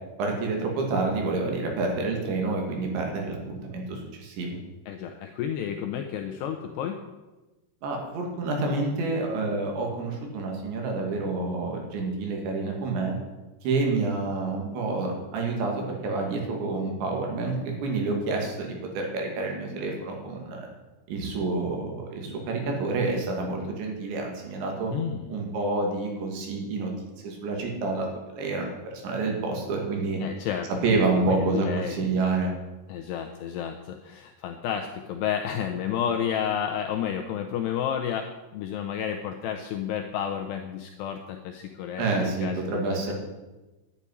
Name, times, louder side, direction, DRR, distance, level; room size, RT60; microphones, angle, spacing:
voice 1, 0.2-4.6 7.8-13.2 13.6-20.7 21.1-24.9 25.3-26.9 27.2-28.1 28.3-30.2 30.8-32.5 42.0-43.1, right 3 dB, 65° right, 1 dB, 4.5 m, -28 dB
voice 2, 4.9-7.0 24.9-25.4 30.2-32.0 32.9-43.0, left 9 dB, 80° left, 4 dB, 2.5 m, -31 dB
11.0 x 8.5 x 9.9 m, 1.1 s
omnidirectional pair, 5.7 m